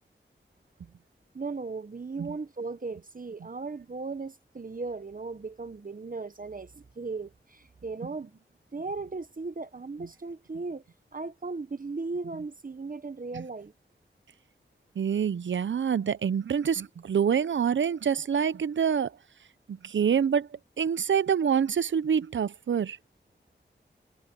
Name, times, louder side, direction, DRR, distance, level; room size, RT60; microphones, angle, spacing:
voice 1, 1.3-8.4 8.7-10.8 11.1-13.7, right 3 dB, 45° right, 1.2 m, -37 dB
voice 2, 15.0-19.2 19.7-23.0, right 7 dB, 75° right, 0.6 m, -26 dB
cardioid pair, 45°, 20 cm